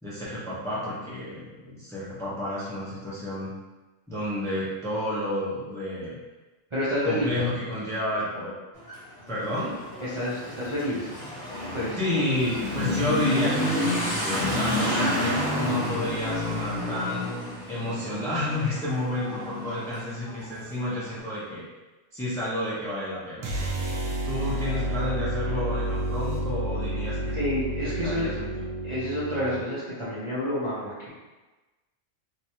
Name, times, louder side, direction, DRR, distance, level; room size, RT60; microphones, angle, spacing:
voice 1, 0.0-3.5 4.1-6.2 7.0-8.5 9.3-9.7 12.0-17.3 17.7-21.6 22.1-27.4 27.8-28.5, left 1 dB, 5° left, -9 dB, 0.8 m, -31 dB
voice 2, 6.7-7.3 10.0-11.1 11.7-12.0 27.3-28.3 28.8-31.1, equal, 25° right, -10 dB, 0.8 m, -29 dB
Motorcycle / Accelerating revving vroom, 8.7-21.1, left 1 dB, 40° left, 1.2 m, -30 dB
sound 1, 23.4-29.6, right 1 dB, 80° right, 1.1 m, -30 dB
3.2 x 3.2 x 2.9 m, 1.2 s
omnidirectional pair, 1.3 m